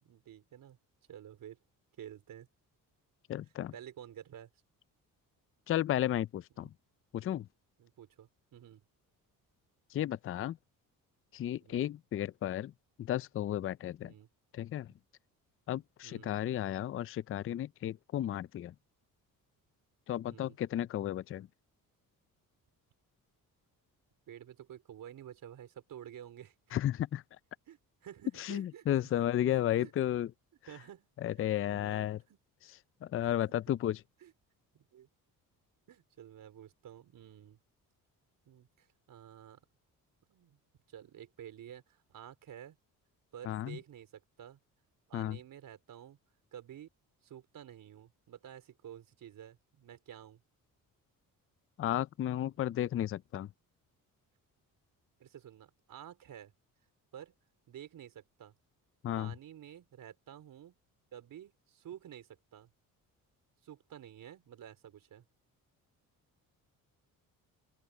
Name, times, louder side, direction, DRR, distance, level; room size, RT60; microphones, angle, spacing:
voice 1, 0.0-0.8 1.1-1.6 2.0-2.5 3.7-4.5 6.6-6.7 7.8-8.8 11.6-11.8 14.0-14.3 16.0-16.4 20.2-20.6 24.3-26.5 27.7-29.0 29.5-29.9 30.7-31.1 31.4-32.4 33.0-33.1 34.2-34.3 34.7-35.1 35.9-37.6 38.5-39.6 40.3-40.6 40.9-42.8 43.3-44.6 45.1-46.2 46.5-46.9 47.2-50.4 55.2-56.5 57.1-57.3 57.7-58.5 59.2-60.8 61.1-62.7 63.6-65.2, right 10 dB, 65° right, 4.4 m, -51 dB
voice 2, 3.3-3.7 5.7-6.7 7.1-7.5 9.9-10.6 11.3-12.7 13.0-14.1 14.5-14.9 15.7-18.7 20.1-21.5 26.7-27.2 28.4-30.3 31.2-32.2 33.0-34.0 43.4-43.8 45.1-45.4 51.8-53.5 59.0-59.3, left 12 dB, 40° left, 0.4 m, -33 dB
open air
cardioid pair, 100°, 35 cm